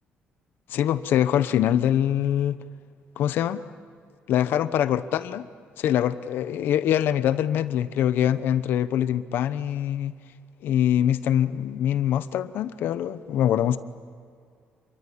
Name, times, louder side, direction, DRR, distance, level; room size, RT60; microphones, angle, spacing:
voice 1, 0.7-2.6 3.2-3.6 4.3-5.4 5.8-10.1 10.6-13.8, left 10 dB, 70° left, 13 dB, 1.0 m, -24 dB
28.0 x 24.0 x 8.6 m, 2.3 s
cardioid pair, 155°, 4 cm